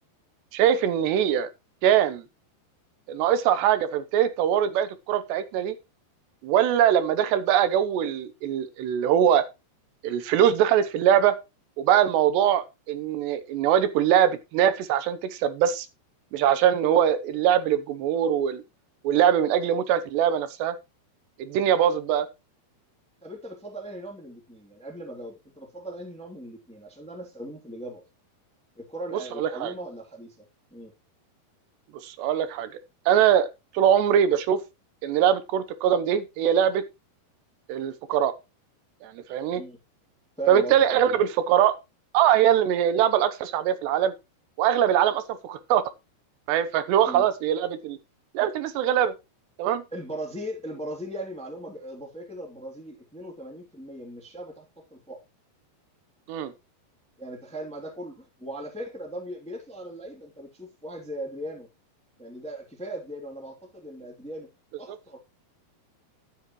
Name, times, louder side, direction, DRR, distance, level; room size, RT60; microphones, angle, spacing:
voice 1, 0.5-1.5 1.8-2.2 3.1-5.8 6.4-9.4 10.0-11.4 11.8-15.9 16.3-18.6 19.0-20.7 21.4-22.3 29.4-29.7 32.0-32.7 33.1-33.5 33.7-34.6 35.0-36.8 37.7-38.3 39.0-39.6 40.5-41.7 42.1-44.1 44.6-45.8 46.5-48.0 48.3-49.1 49.6-49.8 56.3-56.5, right 10 dB, 80° right, 3.1 m, -22 dB
voice 2, 23.2-28.0 28.7-30.5 30.7-30.9 39.5-39.8 40.4-41.2 47.0-47.3 49.9-55.2 57.2-61.7 62.2-64.5 64.8-65.2, right 1 dB, ahead, 1.8 m, -38 dB
12.5 x 8.2 x 3.1 m
omnidirectional pair, 5.0 m